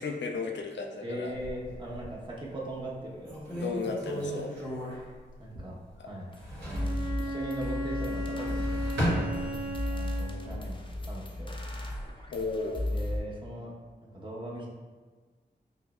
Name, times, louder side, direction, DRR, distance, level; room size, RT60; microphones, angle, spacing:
voice 1, 0.0-1.3 3.6-4.5 6.0-6.1 12.3-12.9, left 4 dB, 70° left, 3 dB, 0.5 m, -34 dB
voice 2, 1.0-3.7 4.1-4.4 4.9-5.1 5.4-5.8 6.0-6.3 6.6-8.7 9.3-11.5 12.2-12.3 12.9-13.7 14.0-14.7, right 1 dB, 25° right, -5 dB, 1.0 m, -40 dB
sound 1, 1.3-2.3 2.8-2.9 3.2-5.9 6.2-7.0 8.1-9.9 10.3-11.0, equal, 75° right, 1.4 m, -35 dB
sound 2, 6.3-6.4 6.7-13.2, left 1 dB, 25° left, 0.6 m, -35 dB
Bowed string instrument, 6.7-10.5, equal, 55° right, 1.1 m, -36 dB
5.4 x 2.0 x 2.4 m, 1.4 s
cardioid pair, 45°, 19 cm